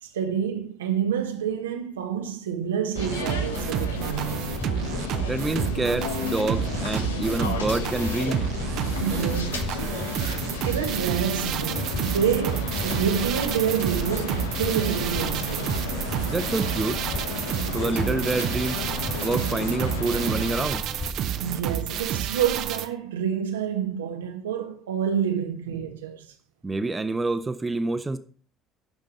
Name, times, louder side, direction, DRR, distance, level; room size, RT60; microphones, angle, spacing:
voice 1, 0.0-4.5 9.0-9.7 10.6-15.8 21.4-26.3, right 8 dB, 80° right, 1.1 m, -28 dB
sound 1, 2.9-20.7, left 4 dB, 80° left, 1.3 m, -33 dB
sound 2, 3.0-22.9, right 9 dB, 55° right, 0.9 m, -30 dB
sound 3, 4.4-21.3, left 2 dB, 20° left, 1.1 m, -37 dB
voice 2, 5.3-8.4 16.3-17.0 17.7-18.8 19.2-20.8 26.6-28.2, right 3 dB, 20° right, 1.1 m, -27 dB
11.5 x 5.3 x 6.4 m
figure-of-eight pair, 60°, 0 cm